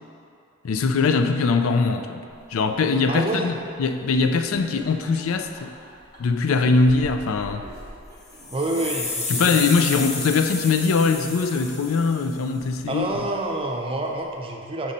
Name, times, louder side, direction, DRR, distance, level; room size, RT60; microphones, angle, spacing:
voice 1, 0.6-2.2 2.5-5.7 6.2-7.6 9.3-13.1, left 4 dB, 75° left, 8 dB, 0.4 m, -21 dB
sound 1, 1.2-3.1 3.4-3.5 4.5-6.4 7.2-7.3 7.6-9.3 9.8-9.9 10.1-10.2, right 1 dB, 15° left, 1.2 m, -49 dB
sound 2, 2.3-14.4, equal, 60° left, 1.3 m, -48 dB
voice 2, 3.1-3.5 8.5-9.9 12.9-14.9, right 2 dB, 25° right, 1 dB, 0.6 m, -28 dB
sound 3, 8.2-12.4, left 3 dB, 35° left, 0.8 m, -31 dB
6.2 x 5.2 x 4.2 m, 2.5 s
head